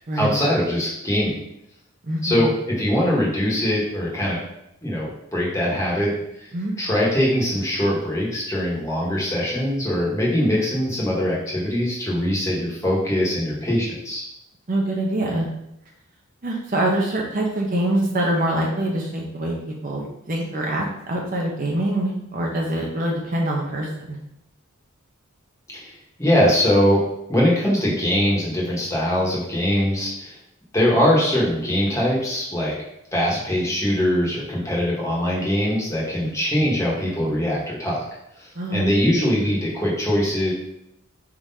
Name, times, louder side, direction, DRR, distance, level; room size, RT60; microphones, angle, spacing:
voice 1, 0.1-1.3 2.2-4.4 4.8-6.5 6.8-14.2 25.7-25.9 26.2-30.4 30.7-32.7 33.1-38.1 38.4-40.5, equal, 15° left, -5 dB, 1.2 m, -22 dB
voice 2, 2.0-2.4 6.5-6.7 14.7-15.5 16.4-24.2 36.2-36.3 38.6-39.1, right 1 dB, 40° right, -1 dB, 0.7 m, -25 dB
4.7 x 3.7 x 2.7 m, 0.79 s
head